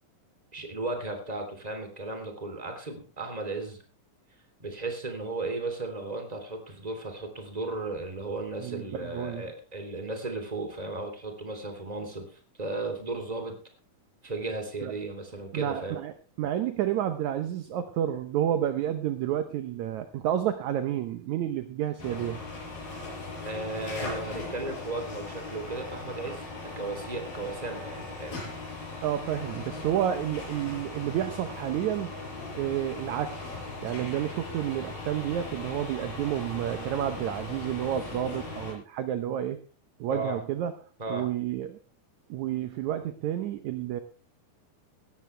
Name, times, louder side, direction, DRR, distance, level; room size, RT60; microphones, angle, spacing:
voice 1, 0.5-3.8 4.6-12.2 12.6-13.5 14.2-16.0 23.4-26.5 26.7-28.5 40.1-40.4 41.0-41.3, right 2 dB, 10° right, 5 dB, 2.9 m, -35 dB
voice 2, 8.6-9.5 14.8-14.9 15.5-22.4 29.0-32.1 32.5-33.5 33.8-39.6 40.0-40.7 41.1-41.8 42.3-44.0, right 11 dB, 70° right, 9 dB, 2.0 m, -30 dB
sound 1, 22.0-38.7, left 3 dB, 85° left, 6.9 m, -39 dB
18.5 x 13.5 x 3.3 m, 0.35 s
omnidirectional pair, 4.1 m